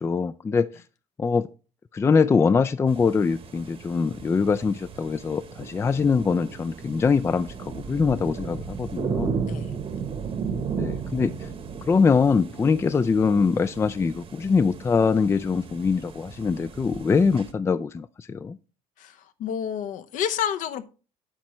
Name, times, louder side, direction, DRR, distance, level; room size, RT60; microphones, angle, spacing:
voice 1, 0.0-0.7 1.2-1.5 1.9-7.5 7.9-9.4 10.8-11.3 11.9-18.6, left 5 dB, 20° left, 0.3 m, -23 dB
sound 1, 2.9-17.5, right 6 dB, 40° right, 1.0 m, -35 dB
voice 2, 19.0-20.9, left 9 dB, 65° left, 0.8 m, -29 dB
8.9 x 5.7 x 3.1 m
cardioid pair, 105°, 14 cm